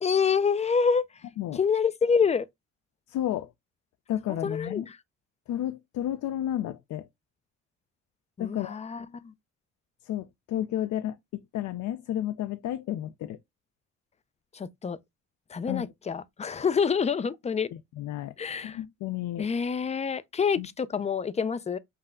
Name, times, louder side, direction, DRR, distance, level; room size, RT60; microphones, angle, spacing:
voice 1, 0.0-1.0 1.5-2.5 4.4-5.0 8.4-9.3 14.5-15.0 15.5-17.7 18.4-18.8 19.4-21.8, left 6 dB, 20° left, 0.4 m, -27 dB
voice 2, 3.1-3.5 4.1-4.9 5.5-7.1 8.4-8.8 10.0-11.2 11.5-13.4 15.7-15.9 17.7-18.3 18.6-19.5 20.6-20.7, left 12 dB, 70° left, 0.5 m, -32 dB
5.7 x 2.1 x 3.6 m
cardioid pair, 90°, 30 cm